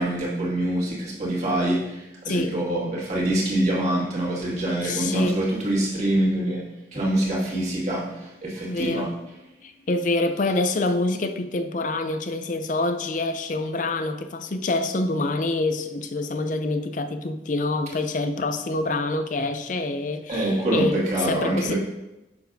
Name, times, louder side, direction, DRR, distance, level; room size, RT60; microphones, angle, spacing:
voice 1, 0.0-6.7 6.9-9.1 20.3-21.7, right 1 dB, 40° right, -5 dB, 2.0 m, -25 dB
voice 2, 2.3-2.6 4.8-5.4 8.7-9.1 9.6-21.0 21.3-21.7, left 2 dB, 45° left, 8 dB, 0.5 m, -26 dB
6.9 x 6.1 x 2.6 m, 0.96 s
head